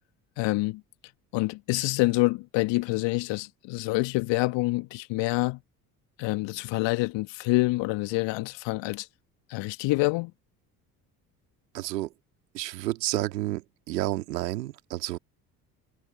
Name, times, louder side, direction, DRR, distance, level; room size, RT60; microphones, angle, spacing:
voice 1, 0.4-0.8 1.3-5.6 6.2-9.1 9.5-10.3, left 22 dB, 60° left, 1.5 m, -27 dB
voice 2, 11.7-12.1 12.5-15.2, right 17 dB, 75° right, 2.3 m, -30 dB
figure-of-eight pair, 55°, 49 cm